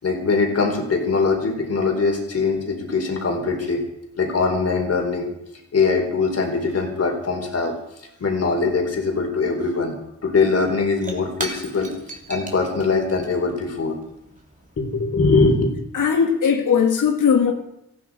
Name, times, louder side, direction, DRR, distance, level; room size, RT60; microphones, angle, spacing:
voice 1, 0.0-3.8 4.2-5.3 5.7-7.7 8.2-10.0 10.2-11.9 12.3-13.9 14.8-15.7, left 4 dB, 55° left, 3 dB, 4.2 m, -21 dB
Shatter / Crushing, 10.0-10.1 10.4-15.2, right 2 dB, 25° right, 3.3 m, -38 dB
voice 2, 15.9-17.5, left 7 dB, 85° left, 3 dB, 2.1 m, -18 dB
18.5 x 15.0 x 5.0 m, 0.81 s
wide cardioid pair, 105°, 31 cm